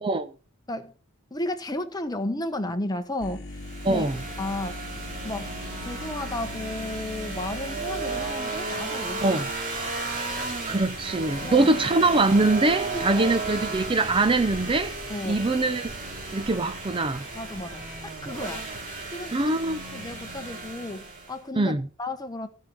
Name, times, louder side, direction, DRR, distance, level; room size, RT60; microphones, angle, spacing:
voice 1, 0.0-0.3 3.8-4.2 9.2-9.5 10.7-15.0 15.3-15.9 16.3-17.3 19.3-19.8 21.6-21.9, right 2 dB, 25° right, 0.6 m, -23 dB
voice 2, 1.3-3.6 3.9-4.1 4.4-4.8 5.2-5.5 5.8-9.4 11.4-11.7 12.9-13.4 15.1-15.4 17.3-18.7 19.1-19.6 19.9-22.5, left 1 dB, 20° left, 1.2 m, -33 dB
sound 1, 3.2-8.3, left 2 dB, 55° left, 1.4 m, -39 dB
sound 2, 3.5-21.4, right 3 dB, 40° right, 2.8 m, -34 dB
16.5 x 5.6 x 6.2 m
head